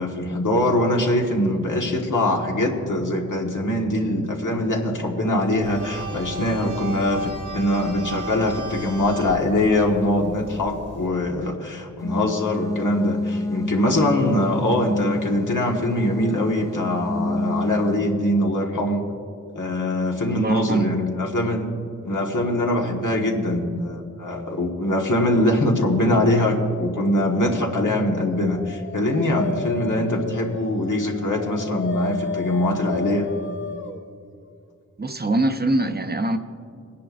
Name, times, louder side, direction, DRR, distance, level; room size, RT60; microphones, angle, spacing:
voice 1, 0.0-19.0 19.5-21.7 22.0-33.3, left 1 dB, 85° left, 0 dB, 1.5 m, -23 dB
sound 1, 5.6-11.1, right 3 dB, 80° right, 1.6 m, -35 dB
sound 2, 12.0-18.0, left 1 dB, 10° left, 0.3 m, -29 dB
voice 2, 20.3-20.9 35.0-36.4, right 2 dB, 30° right, 7 dB, 0.7 m, -23 dB
Dog, 28.4-34.0, left 3 dB, 40° left, 0.8 m, -33 dB
21.0 x 10.0 x 2.6 m, 2.4 s
wide cardioid pair, 60°, 30 cm